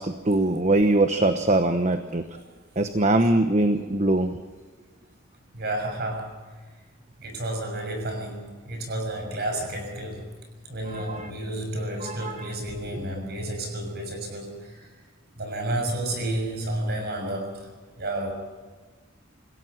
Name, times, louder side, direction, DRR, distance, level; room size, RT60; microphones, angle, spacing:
voice 1, 0.0-2.2 2.8-4.4 10.9-11.3 12.0-12.4, right 2 dB, 35° right, 8 dB, 1.0 m, -22 dB
voice 2, 5.5-6.4 7.2-10.3 10.6-14.9 15.3-18.3, right 1 dB, 50° right, 4 dB, 6.3 m, -31 dB
27.5 x 16.0 x 6.0 m, 1.4 s
head